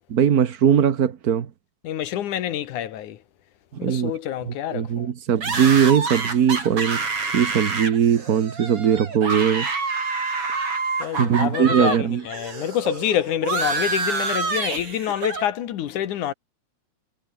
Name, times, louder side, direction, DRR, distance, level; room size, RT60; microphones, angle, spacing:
voice 1, 0.1-1.5 3.7-4.1 4.5-7.0 7.3-9.7 11.2-12.2, right 8 dB, 70° right, 0.8 m, -20 dB
voice 2, 1.8-3.2 3.8-5.1 11.0-16.3, left 11 dB, 75° left, 2.8 m, -27 dB
sound 1, 5.4-12.0 12.3-15.5, right 4 dB, 45° right, 5.7 m, -27 dB
omnidirectional pair, 3.6 m